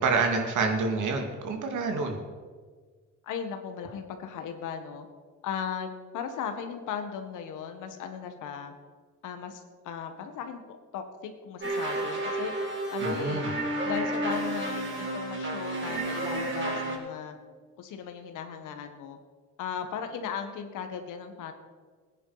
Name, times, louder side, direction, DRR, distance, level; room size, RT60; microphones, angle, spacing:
voice 1, 0.0-2.2 13.0-13.5, right 4 dB, 75° right, 4 dB, 2.6 m, -27 dB
voice 2, 3.2-5.1 5.4-8.7 9.2-12.5 12.9-13.5 13.8-17.4 17.8-19.2 19.6-21.5, left 7 dB, 90° left, 6 dB, 1.8 m, -37 dB
sound 1, 11.6-17.0, right 1 dB, 40° right, 4.3 m, -31 dB
18.5 x 9.9 x 5.1 m, 1.5 s
cardioid pair, 90°, 30 cm